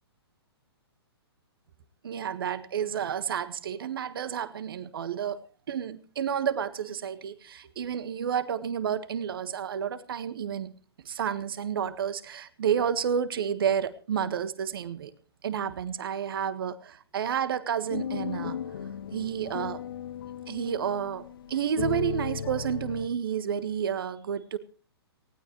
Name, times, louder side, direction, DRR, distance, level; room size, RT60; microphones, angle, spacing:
voice 1, 2.0-5.4 5.7-10.7 11.0-15.1 15.4-18.6 19.1-19.8 20.5-24.6, right 8 dB, 60° right, 14 dB, 1.5 m, -30 dB
sound 1, 17.9-23.1, left 8 dB, 55° left, 1.4 m, -36 dB
19.0 x 16.0 x 3.1 m, 0.38 s
figure-of-eight pair, 125°, 14 cm